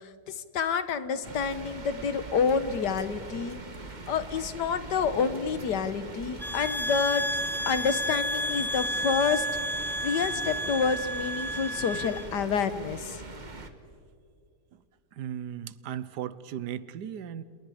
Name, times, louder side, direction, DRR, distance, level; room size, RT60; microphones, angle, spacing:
voice 1, 0.3-3.6 4.1-7.2 7.7-9.5 10.0-13.2, left 6 dB, 80° left, 12 dB, 1.8 m, -28 dB
sound 1, 1.2-13.7, right 3 dB, 30° right, 1.5 m, -42 dB
sound 2, 6.4-12.3, equal, ahead, 0.5 m, -31 dB
voice 2, 15.1-17.4, right 10 dB, 75° right, 16 dB, 1.4 m, -36 dB
28.5 x 28.0 x 5.0 m, 2.3 s
omnidirectional pair, 1.8 m